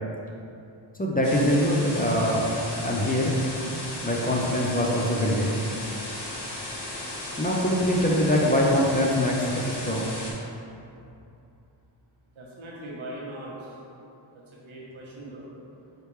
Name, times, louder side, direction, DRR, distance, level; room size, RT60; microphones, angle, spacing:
voice 1, 1.0-2.6 2.8-3.3 4.0-5.6 7.4-10.1, equal, 20° left, -3 dB, 0.4 m, -23 dB
sound 1, 1.2-10.3, left 1 dB, 60° left, 1.1 m, -36 dB
voice 2, 12.4-13.5 14.6-15.5, right 1 dB, 90° right, -5 dB, 1.1 m, -39 dB
4.9 x 3.2 x 3.2 m, 2.7 s
wide cardioid pair, 90°, 46 cm